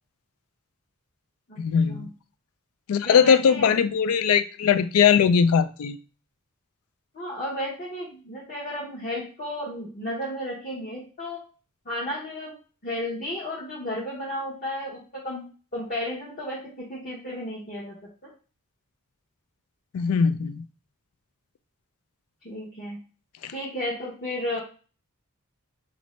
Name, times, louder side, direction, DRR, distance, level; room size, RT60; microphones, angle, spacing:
voice 1, 1.6-2.1 2.9-6.0 19.9-20.6 23.4-23.5, left 7 dB, 70° left, 0.3 m, -20 dB
voice 2, 3.0-3.8 7.1-11.4 11.8-12.5 12.8-15.4 15.7-17.9 18.2-18.3 22.4-23.0 23.5-24.6, left 1 dB, 40° left, 0.9 m, -33 dB
4.2 x 2.5 x 3.1 m
head